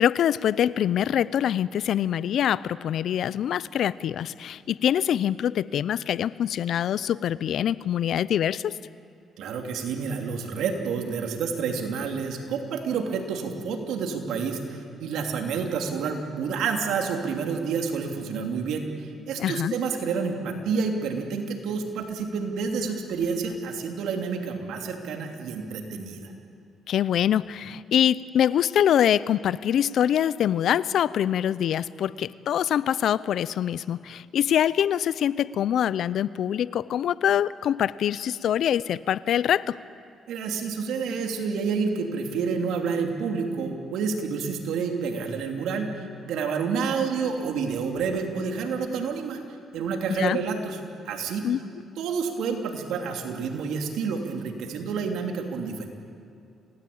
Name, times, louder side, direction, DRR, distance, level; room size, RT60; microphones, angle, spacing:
voice 1, 0.0-8.8 19.4-19.8 26.9-39.8 50.2-50.4 51.4-51.6, left 10 dB, 70° left, 19 dB, 0.6 m, -24 dB
voice 2, 9.4-26.3 40.3-49.4 49.7-50.8 51.0-51.4 52.0-55.9, right 5 dB, 85° right, 3 dB, 3.0 m, -29 dB
28.0 x 18.5 x 8.7 m, 2.4 s
cardioid pair, 90°, 0 cm